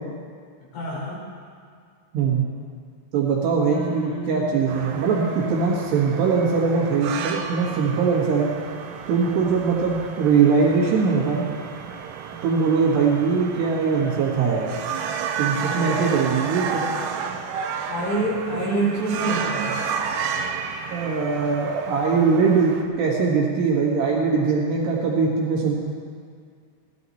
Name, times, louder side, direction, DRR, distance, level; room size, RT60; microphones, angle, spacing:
voice 1, 0.7-1.2 3.7-4.5 15.6-16.5 17.9-19.7, right 2 dB, 65° left, -6 dB, 6.6 m, -27 dB
voice 2, 2.1-2.5 3.1-8.5 9.1-11.5 12.4-14.7 15.4-16.8 20.9-25.7, right 5 dB, 65° right, -3 dB, 3.3 m, -21 dB
sound 1, 4.7-22.8, right 6 dB, 90° right, 2.3 m, -32 dB
17.5 x 13.5 x 4.2 m, 2.1 s
omnidirectional pair, 5.9 m